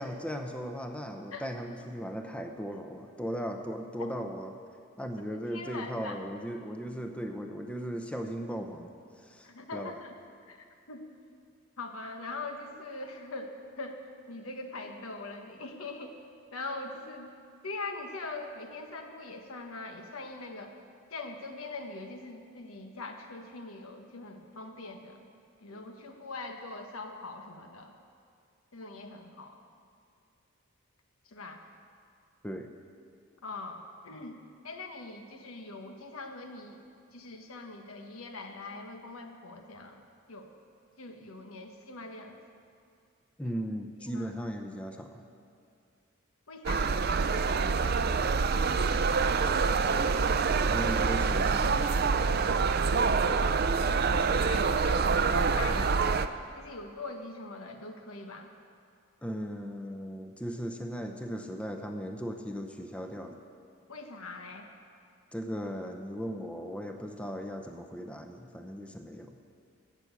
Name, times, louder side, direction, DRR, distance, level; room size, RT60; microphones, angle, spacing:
voice 1, 0.0-4.5 5.0-8.9 9.2-10.0 32.4-32.7 43.4-45.2 50.7-51.7 55.7-55.9 59.2-63.4 65.3-69.3, equal, 5° left, 4 dB, 0.6 m, -37 dB
voice 2, 5.3-6.2 9.4-10.1 10.5-11.1 11.8-14.0 14.3-16.2 16.5-17.3 17.6-20.7 21.1-25.3 25.6-27.9 28.7-29.6 31.2-31.6 33.4-33.8 34.0-34.4 34.6-36.8 37.1-40.0 40.3-40.5 41.0-42.4 43.4-43.5 44.0-44.3 46.5-47.1 52.5-52.6 54.2-56.1 56.5-58.5 63.9-64.7, left 3 dB, 85° left, 4 dB, 1.3 m, -42 dB
sound 1, 46.7-56.3, right 5 dB, 50° right, 0.5 m, -26 dB
15.0 x 6.1 x 8.2 m, 2.4 s
head